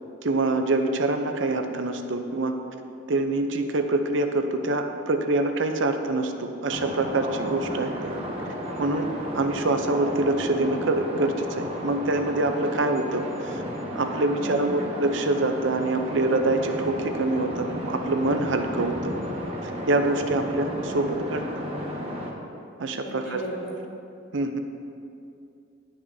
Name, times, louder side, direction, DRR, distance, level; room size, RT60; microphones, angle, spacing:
voice 1, 0.2-2.5 3.1-8.1 8.8-13.6 13.9-19.1 19.6-21.6 22.8-23.4 24.3-24.6, right 2 dB, 65° right, 6 dB, 0.6 m, -25 dB
sound 1, 6.7-22.3, equal, 30° right, 1.0 m, -33 dB
voice 2, 14.4-14.9 23.0-23.7, equal, 40° left, -6 dB, 2.3 m, -36 dB
17.5 x 6.1 x 2.7 m, 2.6 s
head